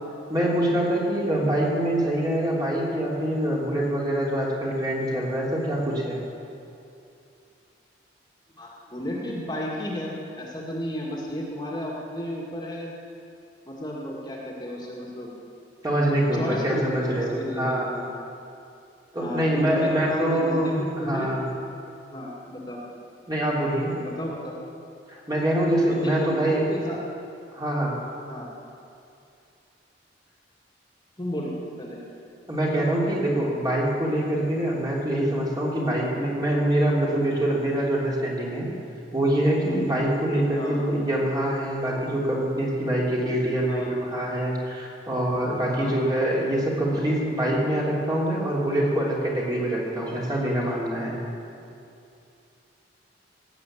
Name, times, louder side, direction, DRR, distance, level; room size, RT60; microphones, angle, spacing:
voice 1, 0.3-6.2 15.8-17.9 19.1-21.4 23.3-24.0 25.1-26.7 27.5-28.0 32.5-38.7 39.1-51.2, right 1 dB, 25° right, -4 dB, 3.1 m, -25 dB
voice 2, 8.6-12.9 13.7-15.3 16.3-18.1 19.2-21.3 22.1-22.8 24.0-24.6 25.9-27.0 28.3-28.5 31.2-32.0 40.5-40.8 43.7-43.9 45.7-46.0, equal, 25° left, -3 dB, 2.1 m, -33 dB
18.5 x 8.2 x 8.6 m, 2.6 s
head